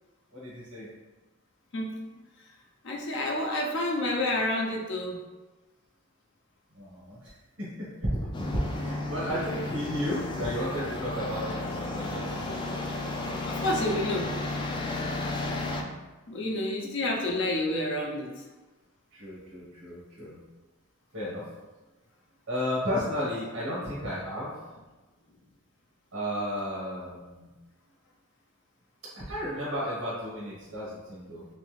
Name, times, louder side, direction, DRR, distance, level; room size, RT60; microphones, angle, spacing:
voice 1, 0.3-0.9 6.7-7.3 7.6-12.8 13.7-14.0 19.1-20.4 21.1-21.4 22.5-24.5 26.1-27.5 29.2-31.5, equal, 90° right, -7 dB, 1.2 m, -33 dB
voice 2, 2.8-5.2 9.3-9.4 13.5-14.3 16.3-18.3, left 1 dB, 60° left, 0 dB, 0.6 m, -29 dB
sound 1, 8.3-15.8, left 2 dB, 25° left, 0.4 m, -33 dB
3.4 x 3.2 x 3.1 m, 1.2 s
head